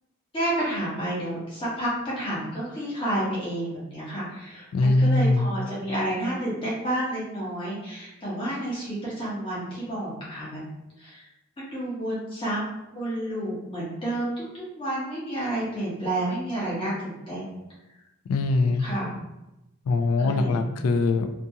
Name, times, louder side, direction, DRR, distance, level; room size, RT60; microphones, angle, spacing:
voice 1, 0.3-10.7 11.0-11.3 11.6-12.6 12.9-17.5 18.8-19.1 20.0-20.7, right 1 dB, 25° left, -8 dB, 0.9 m, -30 dB
voice 2, 4.7-5.5 18.3-18.8 19.9-21.3, left 3 dB, 70° left, 8 dB, 0.3 m, -22 dB
2.6 x 2.3 x 2.7 m, 0.94 s
head